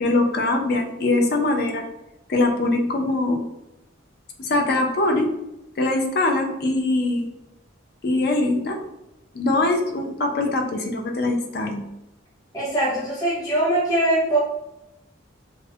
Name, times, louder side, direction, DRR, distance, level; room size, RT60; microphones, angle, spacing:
voice 1, 0.0-1.8 2.3-3.4 4.4-5.3 5.8-7.3 8.0-8.8 9.3-11.8, left 2 dB, 50° left, 3 dB, 0.4 m, -22 dB
voice 2, 12.5-14.4, right 1 dB, 20° left, -8 dB, 0.8 m, -22 dB
2.4 x 2.0 x 2.6 m, 0.88 s
head